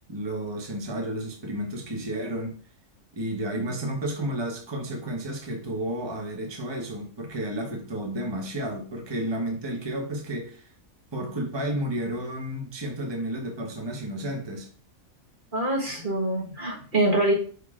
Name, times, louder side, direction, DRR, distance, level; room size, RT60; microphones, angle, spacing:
voice 1, 0.1-2.6 3.1-10.7 11.1-14.7, right 1 dB, 20° right, 2 dB, 1.1 m, -32 dB
voice 2, 15.5-17.3, right 1 dB, 40° right, -1 dB, 1.3 m, -24 dB
5.2 x 4.3 x 4.8 m, 0.42 s
omnidirectional pair, 1.4 m